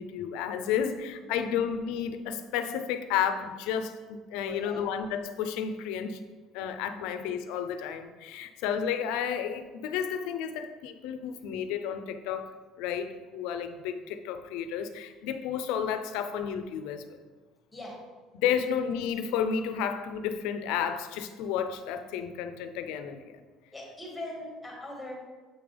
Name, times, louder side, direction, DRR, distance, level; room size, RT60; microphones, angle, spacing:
voice 1, 0.0-6.2 6.5-17.2 18.3-23.4, left 8 dB, 80° left, 9 dB, 0.5 m, -32 dB
voice 2, 4.4-4.8 6.9-7.1 17.7-18.0 23.7-25.2, left 1 dB, 5° left, -2 dB, 1.8 m, -41 dB
7.4 x 5.1 x 3.4 m, 1.3 s
cardioid pair, 150°, 0 cm